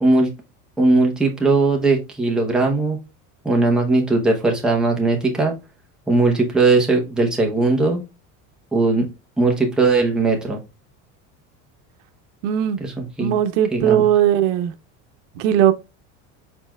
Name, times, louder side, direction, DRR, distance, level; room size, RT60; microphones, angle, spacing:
voice 1, 0.0-0.3 0.8-3.0 3.4-5.6 6.1-8.0 8.7-9.1 9.4-10.6 12.8-13.4 13.7-14.0, right 3 dB, ahead, 0.8 m, -19 dB
voice 2, 12.4-12.8 13.2-14.7 15.4-15.7, right 10 dB, 85° right, 0.8 m, -18 dB
4.4 x 4.4 x 2.2 m
cardioid pair, 150°, 37 cm